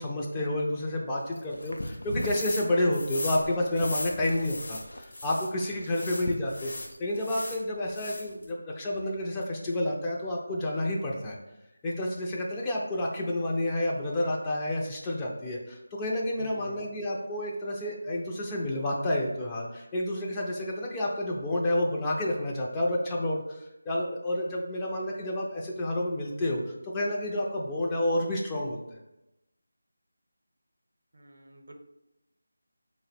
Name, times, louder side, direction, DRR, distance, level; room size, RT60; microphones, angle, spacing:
voice 1, 0.0-6.7 7.0-11.4 11.8-29.0, left 1 dB, 15° left, -3 dB, 0.4 m, -30 dB
sound 1, 1.3-7.1, left 1 dB, 70° left, 0.5 m, -41 dB
sound 2, 2.2-2.7 2.9-5.5 5.9-7.6 7.9-8.5, left 2 dB, 55° left, 0.8 m, -38 dB
voice 2, 16.3-16.8 31.1-31.7, right 1 dB, 65° right, 3 dB, 0.7 m, -48 dB
3.7 x 2.1 x 4.0 m, 0.93 s
figure-of-eight pair, 165°, 0 cm